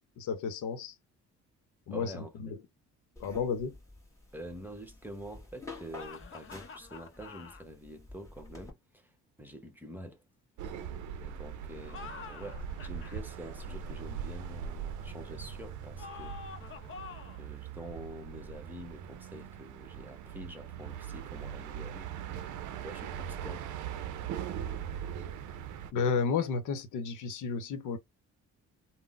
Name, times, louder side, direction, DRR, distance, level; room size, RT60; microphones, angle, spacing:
voice 1, 0.2-0.9 1.9-2.1 2.4-2.6 3.2-3.8 25.9-28.0, left 5 dB, 80° left, 0.8 m, -32 dB
voice 2, 1.9-2.6 4.3-10.2 11.2-16.8 17.4-23.7, right 1 dB, 5° right, 0.9 m, -47 dB
sound 1, 3.2-8.7, left 3 dB, 10° left, 1.4 m, -50 dB
sound 2, 5.9-7.6 11.8-13.2 16.0-17.5, left 5 dB, 45° left, 0.6 m, -47 dB
sound 3, 10.6-25.9, right 8 dB, 75° right, 0.5 m, -41 dB
3.7 x 2.0 x 2.4 m
cardioid pair, 90°, 30 cm